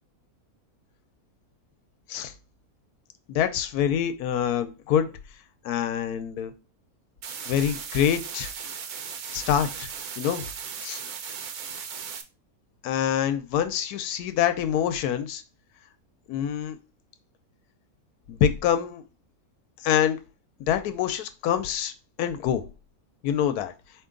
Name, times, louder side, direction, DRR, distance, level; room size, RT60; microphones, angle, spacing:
voice 1, 3.3-5.1 5.6-6.5 7.5-8.5 9.3-9.9 10.2-10.5 10.8-11.0 12.8-15.4 16.3-16.8 18.3-19.0 19.8-20.2 20.7-21.9 22.2-22.6 23.2-23.7, left 9 dB, 85° left, 10 dB, 1.1 m, -25 dB
sound 1, 7.2-12.2, right 7 dB, 80° right, 1.2 m, -37 dB
4.5 x 2.8 x 3.7 m, 0.31 s
omnidirectional pair, 1.6 m